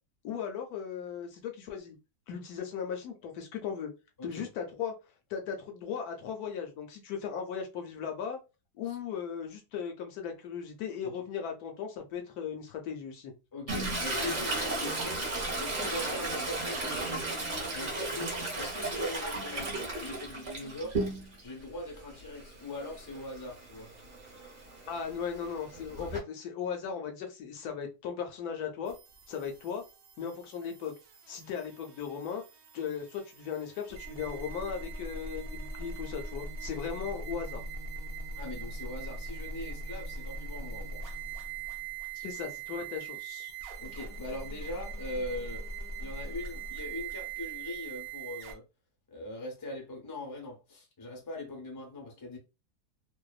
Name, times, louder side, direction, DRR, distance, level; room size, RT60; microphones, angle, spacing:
voice 1, 0.2-2.0 2.3-3.9 4.2-4.9 5.3-8.4 8.8-13.3 24.9-28.9 29.3-29.8 30.2-30.9 31.3-32.4 32.7-37.6 42.1-43.5, left 7 dB, 75° left, 1.0 m, -37 dB
voice 2, 4.2-4.5 8.9-9.0 13.5-15.2 15.6-17.3 17.7-21.0 21.4-23.9 38.4-41.0 43.8-45.6 46.0-48.6 49.1-52.4, left 2 dB, 25° left, 0.4 m, -41 dB
Toilet flush, 13.7-21.5 21.9-26.2, right 2 dB, 40° right, 0.8 m, -35 dB
sound 1, 28.9-48.5, right 3 dB, 85° right, 0.5 m, -41 dB
2.6 x 2.2 x 2.3 m
omnidirectional pair, 1.8 m